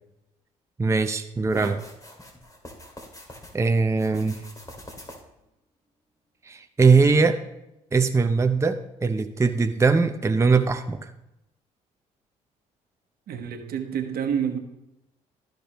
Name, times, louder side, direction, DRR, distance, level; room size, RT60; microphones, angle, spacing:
voice 1, 0.8-1.8 3.5-4.4 6.5-7.4 7.9-11.1, right 4 dB, 15° right, 0.6 m, -21 dB
sound 1, 1.5-3.5 3.9-5.4, left 1 dB, 20° left, 2.3 m, -44 dB
voice 2, 13.3-14.6, right 8 dB, 60° right, 1.2 m, -28 dB
13.5 x 5.1 x 3.0 m
hypercardioid pair, 55°, 17 cm